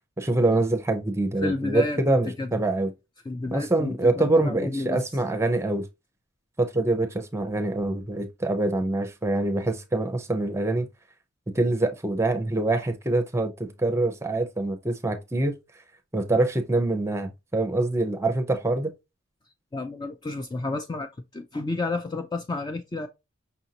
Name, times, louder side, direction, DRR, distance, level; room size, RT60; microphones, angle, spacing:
voice 1, 0.2-2.9 3.5-5.9 6.6-10.9 11.5-15.5 16.1-18.9, right 2 dB, 15° right, 0.6 m, -25 dB
voice 2, 1.4-2.5 3.3-5.0 19.7-23.1, left 2 dB, 20° left, 0.3 m, -31 dB
5.7 x 2.6 x 2.8 m
head